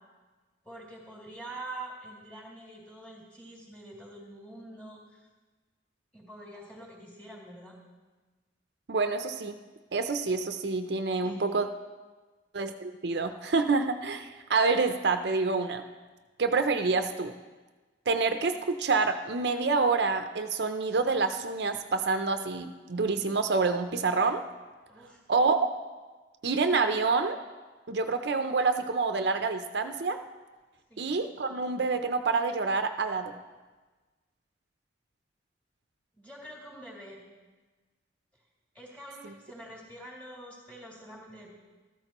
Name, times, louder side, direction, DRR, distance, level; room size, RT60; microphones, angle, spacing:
voice 1, 0.6-5.3 6.1-7.8 11.2-11.4 24.9-25.2 30.9-31.2 36.2-37.2 38.7-41.5, right 1 dB, 10° left, -5 dB, 2.6 m, -45 dB
voice 2, 8.9-9.6 9.9-11.7 12.5-15.8 16.4-17.3 18.1-24.4 25.3-25.7 26.4-27.4 27.9-30.2 31.0-33.3, right 4 dB, 65° right, 7 dB, 0.5 m, -27 dB
14.0 x 13.0 x 3.0 m, 1.3 s
head